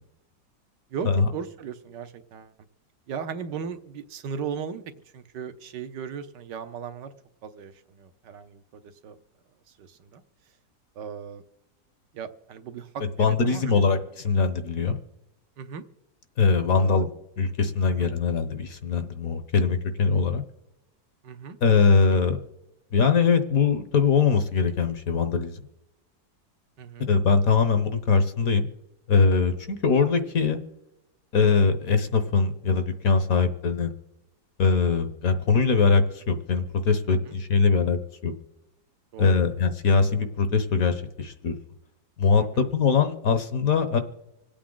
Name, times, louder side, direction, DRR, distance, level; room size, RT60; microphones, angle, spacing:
voice 1, 0.9-2.5 3.1-7.1 7.4-9.2 9.8-10.2 11.0-11.4 12.1-13.8 15.6-15.9 16.7-17.1 17.9-18.1 21.2-21.6 26.8-27.1 37.2-37.4 39.1-39.4 42.5-42.7, right 6 dB, 70° right, 9 dB, 1.5 m, -37 dB
voice 2, 13.2-15.0 16.4-17.1 17.4-20.4 21.6-22.4 22.9-25.6 27.1-28.7 29.1-30.6 31.3-33.9 34.6-38.3 39.2-41.5 42.2-44.0, left 5 dB, 55° left, 9 dB, 1.2 m, -22 dB
26.0 x 8.6 x 3.8 m, 0.92 s
omnidirectional pair, 2.0 m